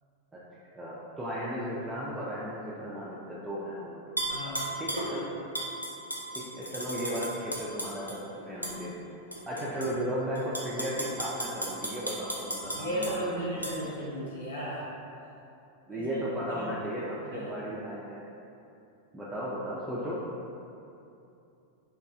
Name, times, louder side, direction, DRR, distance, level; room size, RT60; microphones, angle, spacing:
voice 1, 0.7-4.1 4.4-5.3 6.3-9.2 9.5-13.4 15.9-18.2 19.1-20.2, equal, 10° right, -8 dB, 0.4 m, -35 dB
Tap / Glass, 4.2-5.1 5.5-8.2 8.6-8.8 9.3-9.9 10.4-13.1 13.6-13.7, right 1 dB, 90° right, 0.4 m, -34 dB
voice 2, 4.3-4.6 12.8-14.8 15.9-16.2 16.5-16.7 17.3-17.5, right 1 dB, 70° left, -8 dB, 0.6 m, -35 dB
3.1 x 2.3 x 2.4 m, 2.7 s
figure-of-eight pair, 90°, 0 cm